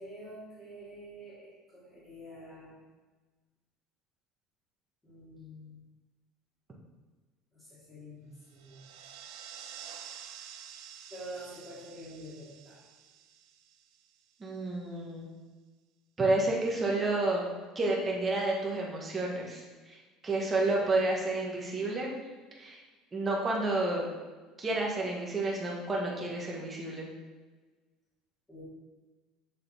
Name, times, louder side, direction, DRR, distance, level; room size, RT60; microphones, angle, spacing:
voice 1, 0.0-2.8 5.0-5.8 7.5-8.8 11.1-12.8 28.5-28.6, equal, 10° left, -10 dB, 2.6 m, -47 dB
sound 1, 8.5-14.3, right 8 dB, 90° right, 0.8 m, -49 dB
voice 2, 14.4-15.3 16.2-17.5 17.7-20.0 20.2-22.1 22.6-22.8 23.1-24.1 24.6-27.1, right 2 dB, 15° right, -2 dB, 1.2 m, -30 dB
8.2 x 6.6 x 3.4 m, 1.3 s
cardioid pair, 180°, 0 cm